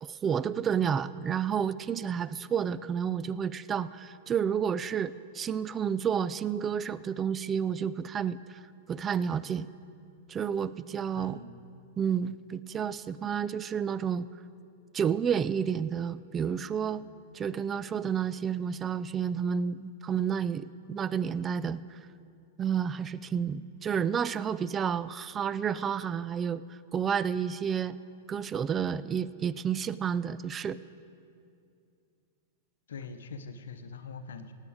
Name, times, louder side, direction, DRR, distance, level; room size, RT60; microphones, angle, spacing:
voice 1, 0.0-8.6 8.9-9.7 10.3-11.4 12.0-14.3 14.9-17.0 17.3-22.0 22.6-28.0 28.3-30.8, right 7 dB, 25° right, 17 dB, 0.3 m, -30 dB
voice 2, 11.1-11.6 32.9-34.5, left 5 dB, 75° left, 8 dB, 0.8 m, -43 dB
17.5 x 8.2 x 5.0 m, 2.4 s
hypercardioid pair, 105°, 0 cm